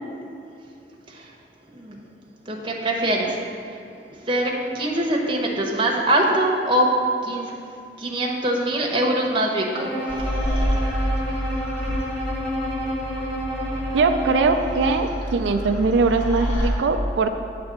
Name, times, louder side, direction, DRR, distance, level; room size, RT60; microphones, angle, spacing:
voice 1, 2.5-3.4 4.2-7.5 8.0-10.3, right 1 dB, 30° right, -1 dB, 0.9 m, -23 dB
Bowed string instrument, 9.7-15.1, equal, ahead, 1.0 m, -29 dB
sound 1, 10.1-16.7, equal, 35° left, 1.4 m, -28 dB
voice 2, 13.9-17.3, right 3 dB, 90° right, 6 dB, 0.4 m, -21 dB
8.8 x 3.4 x 6.6 m, 2.6 s
head